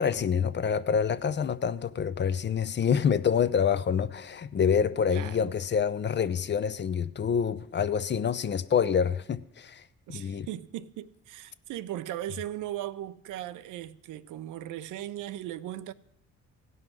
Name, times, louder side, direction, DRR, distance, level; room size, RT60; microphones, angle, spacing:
voice 1, 0.0-9.8 10.1-10.5, left 7 dB, 35° left, 0.5 m, -27 dB
voice 2, 5.1-5.5 10.1-15.9, right 13 dB, 80° right, 0.6 m, -38 dB
16.5 x 5.5 x 6.1 m
cardioid pair, 90°, 30 cm